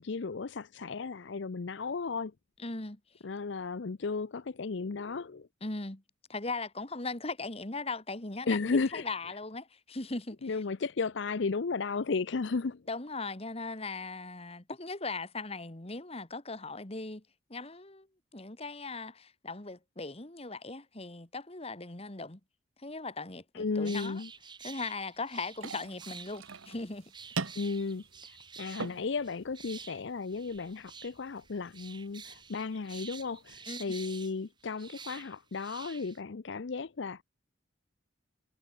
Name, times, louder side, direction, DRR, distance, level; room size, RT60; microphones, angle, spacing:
voice 1, 0.0-2.3 3.2-5.5 8.5-9.1 10.4-12.8 23.5-24.3 27.6-28.0 28.6-37.2, left 4 dB, 60° left, 0.6 m, -34 dB
voice 2, 2.6-3.0 5.6-6.0 6.3-10.6 12.9-17.2 17.5-18.1 18.3-22.4 22.8-24.2 24.6-27.1 27.4-27.5 33.7-33.9, left 3 dB, 30° left, 1.7 m, -39 dB
sound 1, 23.9-36.2, right 6 dB, 20° right, 3.0 m, -49 dB
sound 2, 25.5-33.6, right 4 dB, 85° right, 1.4 m, -44 dB
head